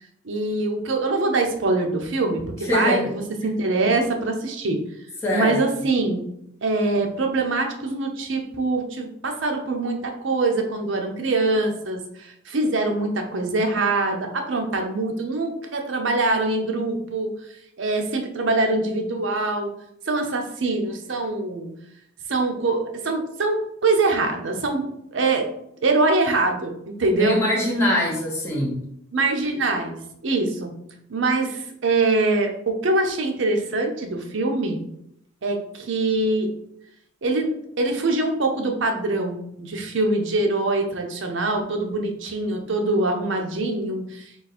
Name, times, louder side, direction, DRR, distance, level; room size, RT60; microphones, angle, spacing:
voice 1, 0.2-3.0 3.4-4.8 5.3-6.2 6.6-17.4 17.8-19.7 20.1-21.7 22.3-25.5 25.8-27.4 29.1-30.0 30.2-30.7 31.1-34.9 35.4-36.5 37.2-44.2, right 2 dB, 65° right, 3 dB, 0.6 m, -23 dB
voice 2, 2.6-3.1 5.2-5.6 27.1-28.8, left 1 dB, 15° left, -5 dB, 1.1 m, -23 dB
3.9 x 2.4 x 4.1 m, 0.75 s
head